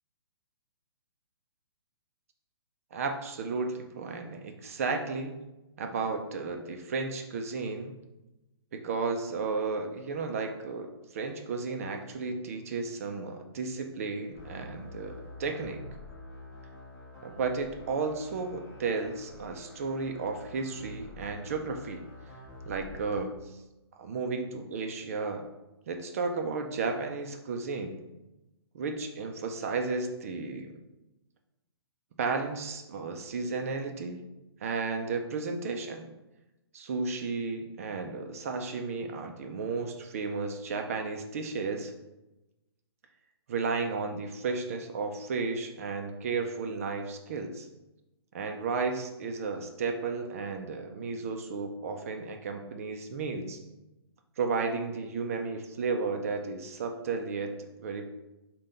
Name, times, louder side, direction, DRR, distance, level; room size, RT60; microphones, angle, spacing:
voice 1, 2.9-5.4 5.8-7.9 8.7-15.8 17.2-22.0 22.7-23.6 24.0-25.5 25.9-28.0 28.7-30.7 32.2-34.2 34.6-36.1 36.7-41.9 43.5-47.7 48.3-53.6 54.4-57.5 57.8-58.1, right 4 dB, 35° right, 4 dB, 0.3 m, -33 dB
sound 1, 14.3-23.2, left 1 dB, 30° left, 1.4 m, -47 dB
5.3 x 2.2 x 3.7 m, 0.99 s
hypercardioid pair, 165°, 14 cm